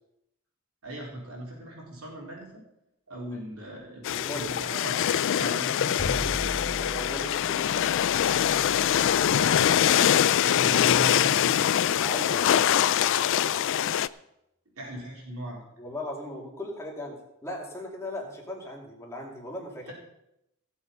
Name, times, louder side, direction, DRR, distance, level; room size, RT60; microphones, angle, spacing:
voice 1, 0.8-2.6 3.1-5.0 5.3-6.3 8.6-9.0 9.4-10.1 10.4-11.8 14.8-15.6 19.8-19.9, right 1 dB, 80° right, -2 dB, 4.2 m, -39 dB
sound 1, 4.0-14.1, left 10 dB, 60° left, 0.4 m, -23 dB
voice 2, 4.1-4.5 6.8-7.8 12.0-12.8 13.1-13.5 15.8-19.9, left 1 dB, 15° left, -2 dB, 2.8 m, -38 dB
Bowed string instrument, 6.0-12.1, equal, 45° left, 2.2 m, -40 dB
16.5 x 7.2 x 5.5 m, 0.83 s
head